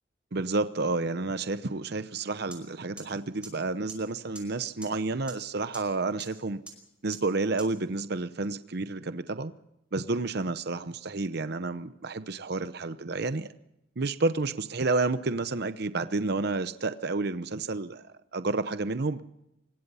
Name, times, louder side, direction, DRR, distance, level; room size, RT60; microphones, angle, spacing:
voice 1, 0.3-6.6 7.0-9.5 9.9-13.5 14.0-19.2, right 3 dB, 55° right, 11 dB, 0.8 m, -30 dB
sound 1, 2.5-2.6 3.0-3.1 3.4-3.5 3.9-4.0 4.3-4.4 4.8-4.9 5.3-5.4 5.7-5.8 6.2-6.3 6.7-6.8 7.1-7.2 7.6-7.7, right 3 dB, 5° right, 5.2 m, -41 dB
25.0 x 21.5 x 5.6 m, 0.86 s
head